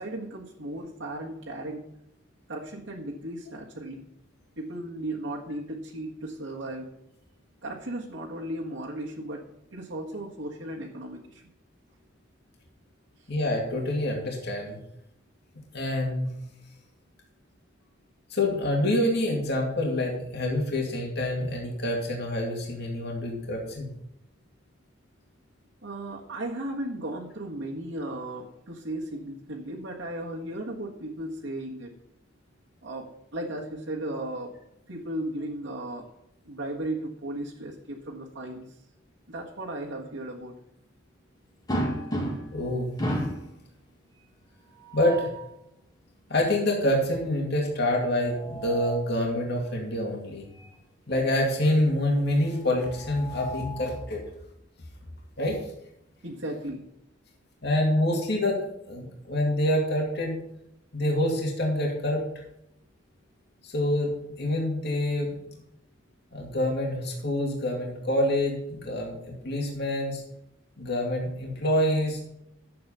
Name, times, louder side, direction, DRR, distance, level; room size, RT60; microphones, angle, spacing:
voice 1, 0.0-1.9 2.5-4.0 4.6-6.9 7.6-9.4 9.7-11.4 25.8-31.9 32.8-34.5 34.9-36.0 36.5-38.6 39.3-40.5 56.2-56.8, right 1 dB, 70° right, -4 dB, 1.7 m, -35 dB
voice 2, 13.3-14.8 15.7-16.3 18.3-23.9 42.5-42.9 44.9-45.3 46.3-50.4 51.1-54.2 55.4-55.6 57.6-60.4 60.9-62.2 63.6-65.6 66.3-70.2 70.8-72.2, left 1 dB, 55° left, -1 dB, 2.5 m, -26 dB
sound 1, 41.7-42.6 43.0-43.5 44.7-45.5 48.1-49.1 50.6-50.7 51.1-51.2 52.7-54.0, right 1 dB, 20° left, 2.0 m, -33 dB
11.0 x 7.8 x 5.6 m, 0.78 s
head